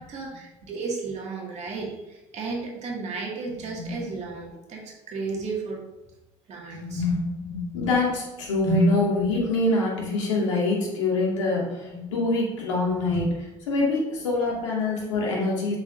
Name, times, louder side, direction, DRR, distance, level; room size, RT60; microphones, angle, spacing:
voice 1, 0.0-4.8 5.1-5.8 6.5-7.0, right 4 dB, 50° right, -2 dB, 2.4 m, -34 dB
voice 2, 6.7-15.8, left 2 dB, 80° left, -3 dB, 2.3 m, -25 dB
7.4 x 7.3 x 2.7 m, 0.99 s
hypercardioid pair, 60°, 15 cm